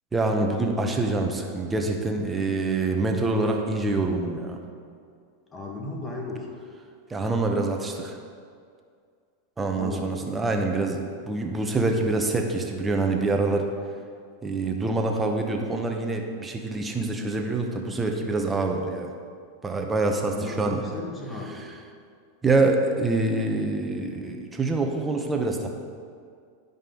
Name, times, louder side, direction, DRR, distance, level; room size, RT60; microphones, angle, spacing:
voice 1, 0.1-4.6 7.1-8.2 9.6-13.7 14.4-19.1 19.6-20.8 22.4-25.7, right 2 dB, 15° right, 2 dB, 1.0 m, -25 dB
voice 2, 5.5-6.6 9.7-10.4 20.3-21.7, left 2 dB, 20° left, 0 dB, 1.6 m, -35 dB
11.0 x 5.3 x 3.9 m, 2.2 s
hypercardioid pair, 120°, 0 cm